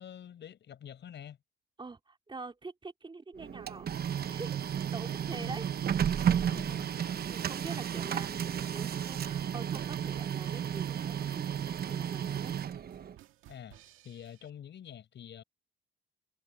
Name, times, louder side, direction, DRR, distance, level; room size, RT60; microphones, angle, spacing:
voice 1, 0.0-1.4 5.3-5.6 6.4-6.9 13.5-15.4, left 9 dB, 65° left, 6.6 m, -47 dB
voice 2, 1.8-3.9 4.3-5.7 6.2-6.9 7.3-12.6, right 3 dB, 25° right, 3.8 m, -45 dB
Printer, 3.4-13.2, right 9 dB, 50° right, 1.0 m, -33 dB
sound 1, 11.0-14.5, right 13 dB, 85° right, 2.0 m, -58 dB
cardioid pair, 90°, 20 cm